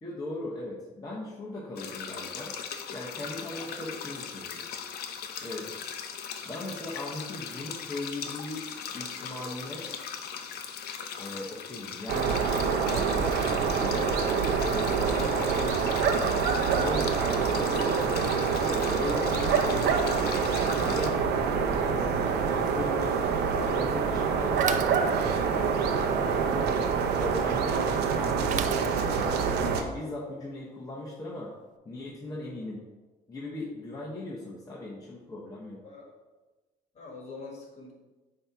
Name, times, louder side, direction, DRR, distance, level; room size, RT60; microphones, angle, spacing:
voice 1, 0.0-2.5 2.9-4.6 5.4-5.7 6.4-8.6 8.9-9.9 11.2-12.3 12.8-14.1 14.6-15.9 16.6-17.2 17.5-18.1 18.6-20.3 20.8-23.3 23.6-26.7 27.1-31.5 31.8-32.8 33.3-35.8, left 2 dB, 20° left, -5 dB, 1.0 m, -38 dB
sound 1, 1.8-21.1, left 7 dB, 70° left, 0.6 m, -39 dB
sound 2, 12.1-29.8, right 6 dB, 75° right, 0.7 m, -26 dB
Bicycle / Mechanisms, 24.6-25.6 28.5-29.4, right 10 dB, 50° right, 0.4 m, -36 dB
voice 2, 27.2-27.5 35.8-36.1 37.0-37.9, left 3 dB, 40° left, -1 dB, 1.9 m, -44 dB
7.7 x 2.8 x 4.6 m, 1.2 s
cardioid pair, 110°, 17 cm